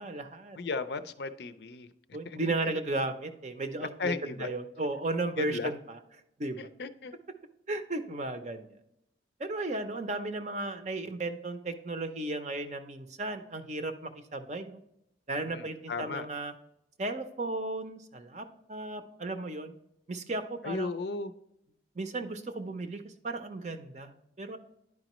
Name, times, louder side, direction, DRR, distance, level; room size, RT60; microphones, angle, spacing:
voice 1, 0.0-0.6 2.1-6.0 6.4-6.7 7.7-8.7 9.4-14.8 15.3-16.5 17.0-19.7 20.1-21.0 21.9-24.6, right 2 dB, 40° right, 8 dB, 0.6 m, -35 dB
voice 2, 0.6-1.9 2.3-2.4 4.0-4.5 5.4-5.7 6.6-7.1 15.5-16.3 20.6-21.3, left 4 dB, 65° left, 11 dB, 0.5 m, -35 dB
10.5 x 5.0 x 3.0 m, 0.81 s
head